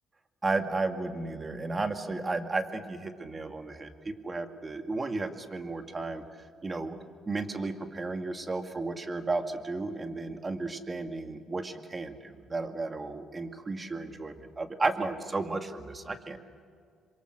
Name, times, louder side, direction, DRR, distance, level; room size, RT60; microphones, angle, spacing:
voice 1, 0.4-6.2 6.6-7.0 7.3-16.4, right 3 dB, 30° right, 6 dB, 2.1 m, -33 dB
27.0 x 23.5 x 6.6 m, 2.2 s
cardioid pair, 80°, 0 cm